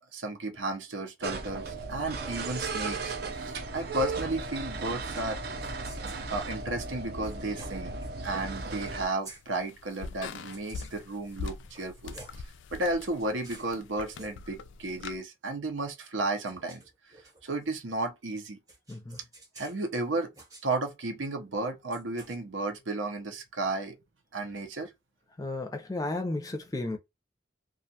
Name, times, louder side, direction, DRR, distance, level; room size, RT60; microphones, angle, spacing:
voice 1, 0.1-5.4 6.3-7.9 8.2-12.1 12.7-16.8 17.4-18.6 19.6-20.3 20.6-24.0 24.3-24.9, right 2 dB, 85° right, 0.7 m, -33 dB
sound 1, 1.2-9.1, right 3 dB, 55° right, 0.5 m, -36 dB
sound 2, 5.1-5.3 5.6-6.3 7.2-8.1 8.8-9.0 9.2-9.4 10.4-11.1 11.6-12.4 13.0-13.7 14.1-14.3 16.1-17.6 18.7-19.9 20.3-20.7 21.9-22.4, right 2 dB, 20° right, 0.8 m, -50 dB
sound 3, 8.5-15.2, left 5 dB, 80° left, 0.3 m, -43 dB
voice 2, 18.9-19.2 25.4-27.0, left 2 dB, 20° left, 0.5 m, -33 dB
2.4 x 2.3 x 2.7 m
head